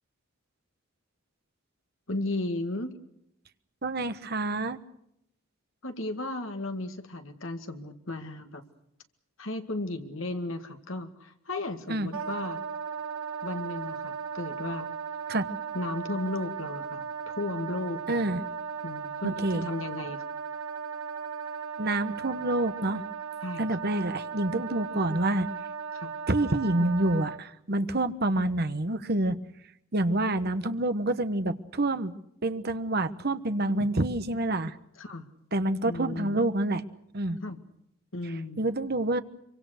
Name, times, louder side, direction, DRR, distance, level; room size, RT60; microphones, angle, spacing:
voice 1, 2.1-3.0 5.8-8.6 9.4-12.6 13.4-14.9 15.7-18.3 18.8-20.2 23.4-23.7 25.9-26.1 33.8-33.9 35.0-35.3 35.9-36.4 37.4-37.6 38.1-38.6, left 2 dB, 65° left, 6 dB, 2.1 m, -35 dB
voice 2, 3.8-4.8 11.9-12.1 15.3-15.4 18.1-18.4 19.2-19.7 21.8-23.0 23.6-25.5 26.3-29.4 29.9-32.1 32.4-34.7 35.5-36.8 37.1-37.4 38.6-39.2, right 2 dB, 50° right, 10 dB, 1.2 m, -27 dB
Wind instrument woodwind instrument, 12.1-27.4, right 6 dB, 85° right, 1.2 m, -37 dB
25.5 x 24.5 x 6.5 m, 0.77 s
head